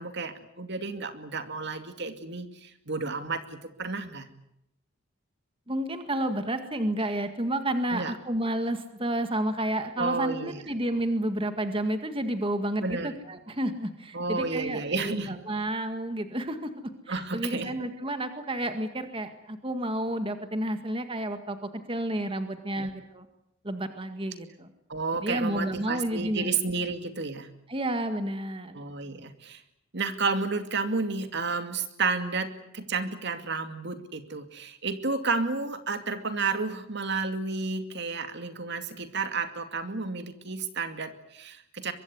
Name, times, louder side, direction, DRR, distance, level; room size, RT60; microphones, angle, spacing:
voice 1, 0.0-4.3 7.9-8.1 10.0-10.6 12.8-13.2 14.1-15.4 17.1-17.7 22.8-22.9 24.9-27.5 28.7-29.6 29.9-41.9, right 4 dB, 60° right, 8 dB, 2.4 m, -31 dB
voice 2, 5.7-23.3 23.6-24.7 25.1-26.5 27.7-28.8, right 1 dB, 25° right, 8 dB, 1.9 m, -31 dB
24.0 x 23.0 x 9.6 m, 0.79 s
head